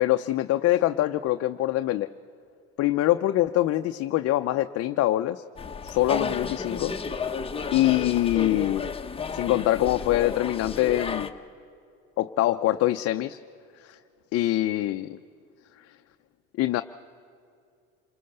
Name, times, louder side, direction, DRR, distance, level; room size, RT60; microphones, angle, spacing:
voice 1, 0.0-2.1 2.8-5.4 5.8-6.9 7.7-8.9 9.3-11.3 12.2-13.4 13.8-14.0 14.3-15.2 16.6-16.8, left 15 dB, 50° left, 7 dB, 0.7 m, -24 dB
sound 1, 5.6-11.3, left 5 dB, 20° left, 1.2 m, -32 dB
27.5 x 19.5 x 6.7 m, 2.4 s
supercardioid pair, 95°, 31 cm